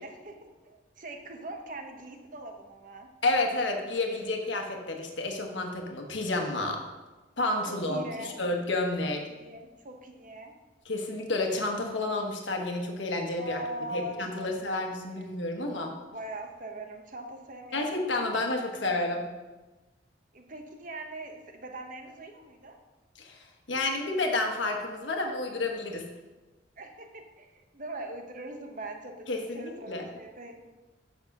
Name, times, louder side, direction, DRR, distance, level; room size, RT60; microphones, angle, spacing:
voice 1, 0.0-3.1 7.7-8.4 9.3-10.5 13.4-14.5 15.1-15.3 16.1-18.0 20.3-22.8 26.8-30.6, right 1 dB, 45° right, 4 dB, 1.1 m, -41 dB
voice 2, 3.2-6.8 7.4-9.2 10.8-13.6 13.9-15.9 17.7-19.2 23.2-26.0 29.3-30.0, left 2 dB, 90° left, 2 dB, 1.3 m, -30 dB
7.2 x 6.7 x 6.0 m, 1.2 s
head